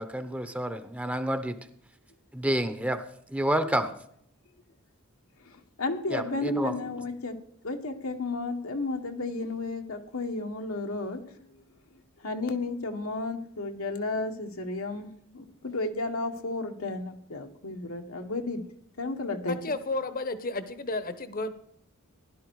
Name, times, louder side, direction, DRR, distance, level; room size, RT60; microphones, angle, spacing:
voice 1, 0.0-1.6 2.3-3.0 3.3-3.9 6.1-6.7, right 1 dB, 5° right, 10 dB, 0.8 m, -29 dB
voice 2, 5.4-7.4 7.6-11.6 12.2-18.6 19.0-19.6, left 2 dB, 85° left, 4 dB, 1.6 m, -33 dB
voice 3, 19.5-21.5, left 2 dB, 45° left, 12 dB, 1.0 m, -32 dB
16.0 x 11.5 x 4.7 m, 0.68 s
head